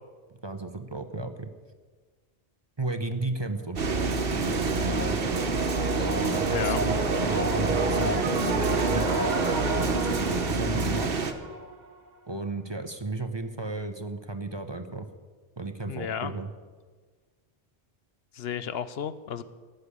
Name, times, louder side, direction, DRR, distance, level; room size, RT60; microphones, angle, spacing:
voice 1, 0.4-1.5 2.8-5.2 6.0-11.1 12.3-15.1 15.6-16.5, right 2 dB, 30° right, 8 dB, 0.8 m, -34 dB
sound 1, 3.8-11.3, right 3 dB, 65° right, 1.3 m, -28 dB
sound 2, 4.1-11.8, right 3 dB, 45° right, 1.3 m, -31 dB
voice 2, 6.5-6.8 15.9-16.3 18.3-19.4, left 8 dB, 80° left, 13 dB, 0.9 m, -32 dB
15.5 x 6.7 x 9.8 m, 1.4 s
omnidirectional pair, 1.0 m